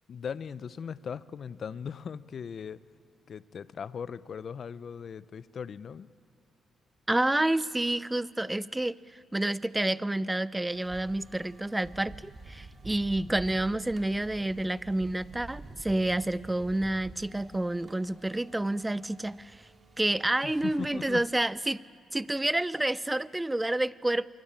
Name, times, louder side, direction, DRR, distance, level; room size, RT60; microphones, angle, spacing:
voice 1, 0.1-2.8 3.3-6.1 20.4-21.3, left 6 dB, 55° left, 16 dB, 0.6 m, -39 dB
voice 2, 7.1-9.0 9.3-19.7 20.0-21.8 22.1-24.3, right 1 dB, 10° right, 18 dB, 0.6 m, -29 dB
sound 1, 10.7-21.3, right 2 dB, 35° right, 4.5 m, -49 dB
26.5 x 23.5 x 8.8 m, 2.3 s
cardioid pair, 90°, 0 cm